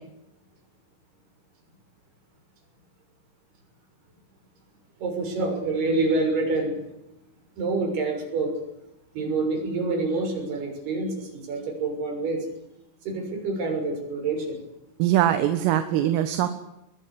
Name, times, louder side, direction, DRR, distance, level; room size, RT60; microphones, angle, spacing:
voice 1, 5.0-6.8 7.6-8.5 9.1-12.5 13.0-14.6, right 3 dB, 50° right, 4 dB, 8.2 m, -27 dB
voice 2, 15.0-16.5, right 12 dB, 80° right, 9 dB, 3.9 m, -22 dB
22.5 x 22.5 x 8.5 m, 0.89 s
omnidirectional pair, 6.0 m